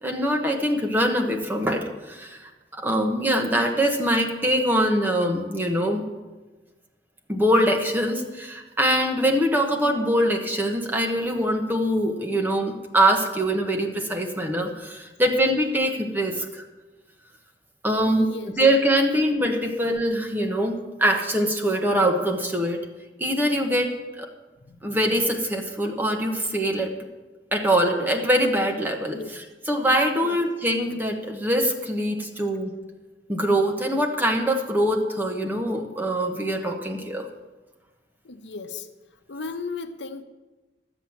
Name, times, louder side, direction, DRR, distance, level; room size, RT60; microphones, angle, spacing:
voice 1, 0.0-6.0 7.3-16.6 17.8-22.8 23.2-23.9 24.2-24.3 24.8-26.9 27.5-32.7 33.3-37.3, equal, 10° right, 2 dB, 1.2 m, -23 dB
voice 2, 18.0-18.5 24.6-24.9 29.1-29.3 30.2-30.4 38.2-38.9 39.3-40.2, left 4 dB, 90° left, 9 dB, 0.8 m, -36 dB
12.0 x 8.1 x 7.2 m, 1.2 s
head